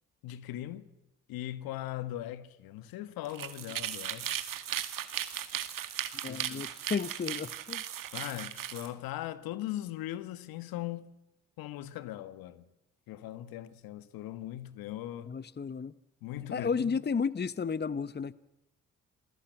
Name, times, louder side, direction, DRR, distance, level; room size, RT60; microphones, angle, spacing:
voice 1, 0.2-0.9 1.3-4.4 6.2-6.6 8.1-11.2 11.6-12.6 13.1-15.3 16.2-17.0, left 13 dB, 75° left, 1.4 m, -39 dB
sound 1, 3.2-8.9, right 10 dB, 65° right, 2.2 m, -37 dB
voice 2, 6.2-7.8 15.3-15.9 16.5-18.3, left 5 dB, 30° left, 1.0 m, -33 dB
28.0 x 20.5 x 7.9 m
hypercardioid pair, 45°, 36 cm